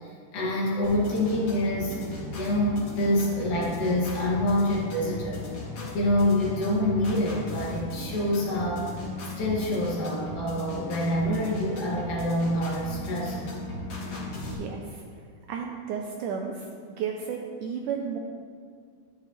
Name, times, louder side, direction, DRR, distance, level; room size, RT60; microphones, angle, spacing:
voice 1, 0.3-2.0 2.4-5.5 5.9-8.9 9.4-13.4, left 1 dB, 65° left, -6 dB, 3.6 m, -26 dB
sound 1, 0.8-14.5, left 1 dB, 45° left, 2.9 m, -37 dB
voice 2, 14.4-15.0 15.5-16.7 17.0-18.2, right 7 dB, 80° right, 2 dB, 1.9 m, -33 dB
12.5 x 11.0 x 3.2 m, 2.1 s
omnidirectional pair, 4.2 m